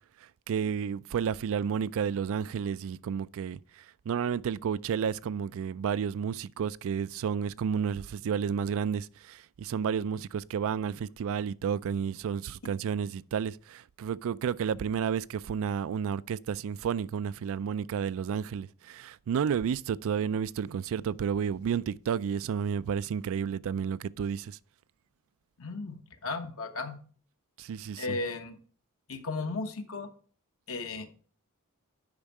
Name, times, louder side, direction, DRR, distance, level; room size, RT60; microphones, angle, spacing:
voice 1, 0.2-24.6 27.6-28.2, right 7 dB, 65° right, 0.3 m, -31 dB
voice 2, 25.6-27.0 28.0-28.6 29.1-30.1 30.7-31.1, left 3 dB, 70° left, 1.2 m, -35 dB
8.8 x 5.4 x 4.8 m
head